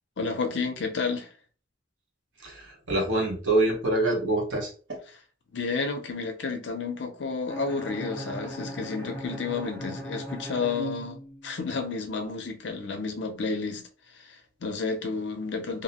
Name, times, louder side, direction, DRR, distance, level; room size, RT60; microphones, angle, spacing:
voice 1, 0.2-1.3 5.5-11.2 11.4-13.8 14.3-15.8, left 4 dB, 70° left, 0.5 m, -31 dB
voice 2, 2.4-5.0, right 2 dB, 80° right, 0.9 m, -26 dB
Bowed string instrument, 7.5-11.6, equal, 10° left, 0.5 m, -38 dB
2.6 x 2.0 x 2.8 m
head